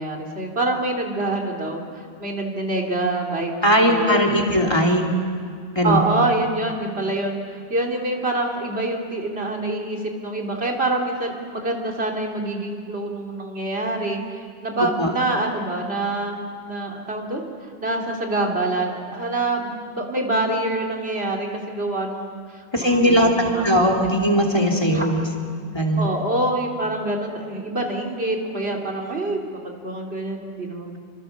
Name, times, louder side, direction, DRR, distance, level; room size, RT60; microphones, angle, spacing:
voice 1, 0.0-4.6 5.8-16.4 16.6-23.9 24.9-25.1 26.0-31.0, right 2 dB, 80° right, 0 dB, 3.3 m, -26 dB
voice 2, 3.6-5.1 5.7-6.0 15.0-15.1 22.7-25.3 25.7-26.1, equal, 25° left, 1 dB, 2.9 m, -19 dB
27.0 x 25.0 x 7.1 m, 2.1 s
omnidirectional pair, 1.0 m